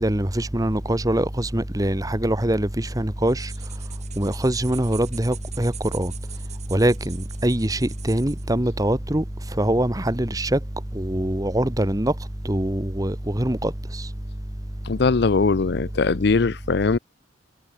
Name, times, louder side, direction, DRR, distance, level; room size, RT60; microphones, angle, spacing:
voice 1, 0.0-6.1 6.7-10.6 10.9-14.1, right 1 dB, 20° right, 1.3 m, -24 dB
sound 1, 3.3-8.5, right 11 dB, 40° right, 4.5 m, -43 dB
voice 2, 14.8-17.0, left 4 dB, 60° left, 0.6 m, -20 dB
head